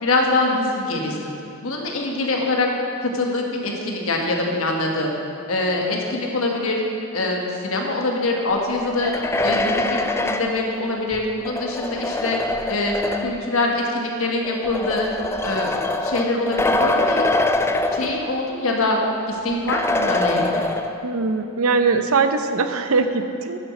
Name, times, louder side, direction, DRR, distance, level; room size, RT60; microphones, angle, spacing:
voice 1, 0.0-1.3 1.6-2.7 3.0-5.1 5.5-6.8 7.1-9.1 9.4-12.4 12.7-15.1 15.4-17.3 17.9-19.0 19.3-20.6, left 2 dB, 70° left, 0 dB, 1.5 m, -24 dB
sound 1, 8.8-13.5 14.4-18.6 18.9-19.0 19.7-21.2, left 2 dB, 10° left, 0.4 m, -24 dB
voice 2, 21.0-23.6, right 4 dB, 75° right, 8 dB, 0.6 m, -21 dB
9.9 x 7.3 x 6.0 m, 2.7 s
head